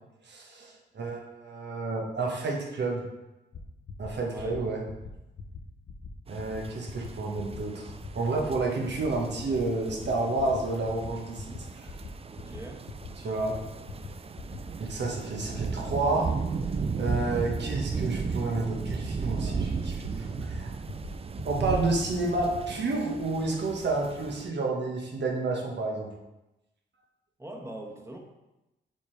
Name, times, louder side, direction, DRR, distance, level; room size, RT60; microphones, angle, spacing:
voice 1, 0.2-3.1 4.0-4.8 6.3-12.1 13.2-13.6 14.8-16.3 17.0-20.7 21.4-26.1, right 3 dB, 65° right, 0 dB, 1.4 m, -30 dB
sound 1, 3.5-3.6 3.9-4.1 4.4-4.6 4.9-5.1 5.4-5.6 5.9-6.1 6.4-6.6 6.9-7.1 7.4-7.6 7.9-8.1 8.4-8.6 8.9-9.1 9.4-9.6 9.9-10.1 10.4-10.6 10.9-11.1 11.4-11.6 11.9-12.1 12.4-12.6 12.9-13.1 13.4-13.6 13.9-14.1 14.4-14.6 14.9-15.1 15.4-15.6 15.9-16.1 16.4-16.6 16.9-17.1 17.4-17.6 17.9-18.1 18.4-18.6 18.9-19.1 19.4-19.6 19.9-20.1 20.4-20.6 20.9-21.1 21.4-21.6 21.9-22.1 22.4-22.6, left 6 dB, 60° left, 0.9 m, -41 dB
voice 2, 4.3-4.7 12.3-12.9 27.4-28.2, right 1 dB, 15° right, 1 dB, 1.3 m, -42 dB
sound 2, 6.3-24.5, right 5 dB, 30° right, 0.4 m, -36 dB
7.0 x 4.6 x 3.4 m, 0.99 s
cardioid pair, 55°, 19 cm